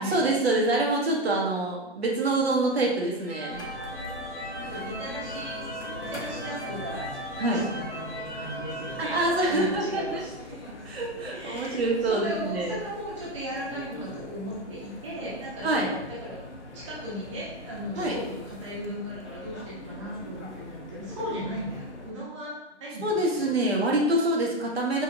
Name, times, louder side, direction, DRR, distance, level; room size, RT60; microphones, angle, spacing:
voice 1, 0.0-3.6 7.4-7.6 9.0-10.2 10.8-12.8 15.6-15.9 18.0-18.2 23.0-25.0, right 2 dB, 60° right, -2 dB, 1.0 m, -26 dB
sound 1, 3.2-10.2, equal, 5° right, 1.0 m, -38 dB
sound 2, 3.5-22.1, left 2 dB, 85° left, 0.8 m, -42 dB
voice 2, 4.1-5.7 6.0-7.1 7.5-9.1 9.5-10.7 11.3-16.4 16.7-22.5 22.8-23.5, equal, 25° right, -6 dB, 0.8 m, -37 dB
5.0 x 2.7 x 2.5 m, 0.94 s
figure-of-eight pair, 155°, 34 cm